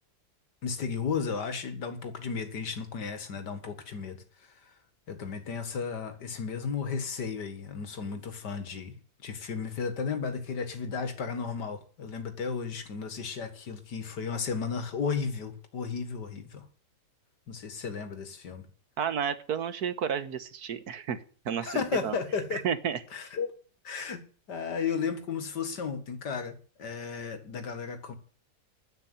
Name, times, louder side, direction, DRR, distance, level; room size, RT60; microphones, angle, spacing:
voice 1, 0.6-4.5 5.1-8.9 9.2-16.7 17.5-18.7 21.6-22.6 23.1-23.5 23.8-24.2 24.5-28.2, left 5 dB, 90° left, 2.4 m, -34 dB
voice 2, 19.0-21.2 21.5-22.2 22.5-23.0, right 8 dB, 70° right, 1.7 m, -31 dB
10.0 x 8.7 x 9.8 m
omnidirectional pair, 1.8 m